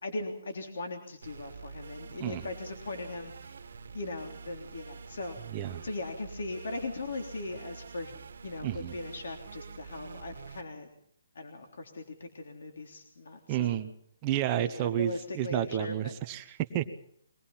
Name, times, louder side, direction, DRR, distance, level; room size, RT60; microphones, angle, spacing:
voice 1, 0.0-3.6 3.9-5.4 5.8-8.1 8.4-10.9 11.3-13.8 14.5-16.1, left 2 dB, 65° left, 3 dB, 3.4 m, -39 dB
sound 1, 1.2-10.6, right 5 dB, 60° right, 1.8 m, -47 dB
voice 2, 5.5-5.8 8.6-8.9 13.5-13.9 14.2-16.8, right 12 dB, 15° right, 7 dB, 0.9 m, -31 dB
23.5 x 19.5 x 5.7 m, 0.68 s
hypercardioid pair, 180°, 0 cm